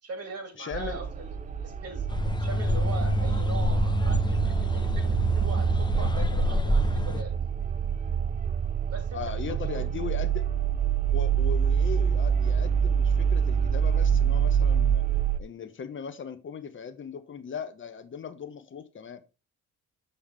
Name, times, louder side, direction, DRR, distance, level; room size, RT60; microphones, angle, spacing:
voice 1, 0.0-2.1 2.4-7.5 8.9-9.4 9.6-9.9, right 4 dB, 55° right, 2.7 m, -41 dB
voice 2, 0.6-1.0 9.1-10.5 11.1-15.0 15.4-19.2, left 6 dB, 40° left, 1.1 m, -38 dB
sound 1, 0.7-15.4, right 8 dB, 25° right, 0.4 m, -26 dB
sound 2, 2.1-7.2, left 1 dB, 15° left, 0.7 m, -27 dB
7.0 x 5.6 x 3.5 m
cardioid pair, 90°, 30 cm